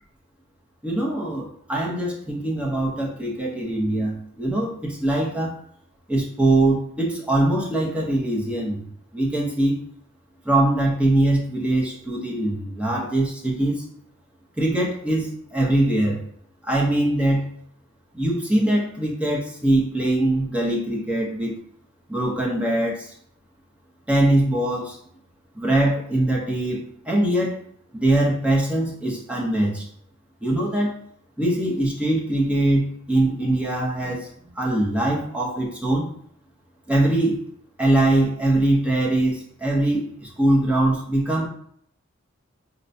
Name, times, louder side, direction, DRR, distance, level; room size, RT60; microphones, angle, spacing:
voice 1, 0.8-5.5 6.1-8.8 9.1-9.8 10.4-13.8 14.6-16.2 16.6-17.5 18.1-21.5 22.1-23.1 24.1-25.0 25.6-26.8 27.1-27.6 27.9-29.8 30.4-30.9 31.4-34.3 34.6-36.1 36.9-37.4 37.8-41.5, right 1 dB, 5° right, -3 dB, 0.6 m, -22 dB
4.1 x 2.2 x 2.6 m, 0.65 s
head